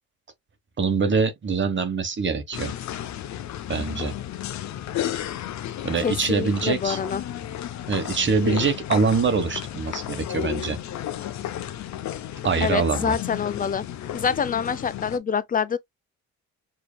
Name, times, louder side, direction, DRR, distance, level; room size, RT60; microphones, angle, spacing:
voice 1, 0.8-2.7 3.7-4.1 5.8-7.0 7.9-10.8 12.4-13.2, right 4 dB, 40° right, 1.0 m, -24 dB
sound 1, 2.5-15.2, left 11 dB, 65° left, 0.6 m, -33 dB
voice 2, 6.0-7.2 12.6-13.9 14.1-15.8, left 6 dB, 30° left, 0.4 m, -26 dB
5.0 x 2.8 x 2.2 m
cardioid pair, 90°, 30 cm